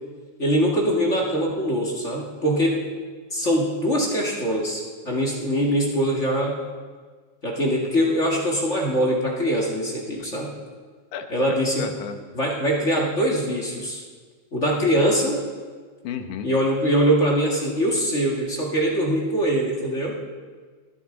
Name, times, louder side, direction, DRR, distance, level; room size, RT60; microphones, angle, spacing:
voice 1, 0.4-2.8 3.3-6.6 7.4-10.5 11.3-11.9 12.3-14.0 14.5-15.4 16.4-20.2, equal, 30° left, -2 dB, 1.7 m, -23 dB
voice 2, 11.1-12.2 16.0-16.5, left 8 dB, 85° left, 6 dB, 2.6 m, -33 dB
21.0 x 12.5 x 3.9 m, 1.5 s
omnidirectional pair, 3.5 m